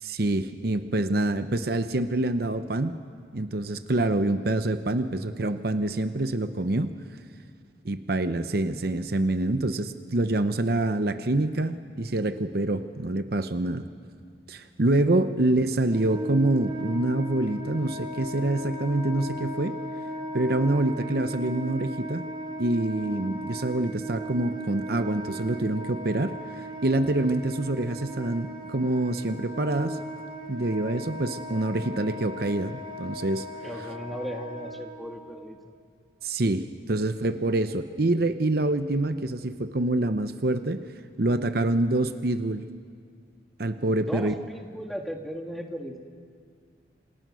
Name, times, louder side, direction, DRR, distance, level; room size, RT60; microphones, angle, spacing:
voice 1, 0.0-3.0 3.3-6.9 7.8-13.9 14.5-19.8 20.3-22.3 22.6-30.0 30.5-33.5 36.2-40.8 41.2-42.7 43.6-44.3, right 2 dB, 55° right, 10 dB, 0.8 m, -26 dB
Wind instrument woodwind instrument, 15.8-35.3, equal, 30° right, 3.2 m, -37 dB
voice 2, 33.6-35.7 44.0-46.0, equal, ahead, 2 dB, 1.7 m, -37 dB
27.5 x 27.0 x 6.3 m, 2.1 s
head